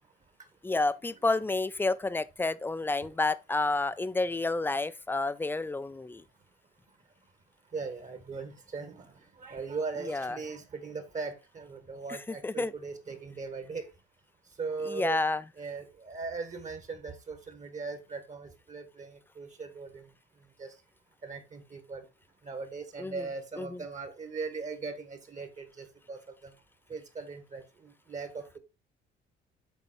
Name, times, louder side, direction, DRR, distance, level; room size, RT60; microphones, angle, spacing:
voice 1, 0.6-6.2 10.0-10.4 12.1-12.7 14.9-15.4 23.0-23.2 23.6-23.8, left 3 dB, 10° left, 0.5 m, -30 dB
voice 2, 7.7-9.1 9.4-13.9 14.6-15.2 15.6-20.1 20.6-20.7 21.2-22.1 22.4-26.5 26.9-28.6, right 4 dB, 40° right, 1.6 m, -39 dB
7.0 x 4.2 x 4.3 m
cardioid pair, 105°, 19 cm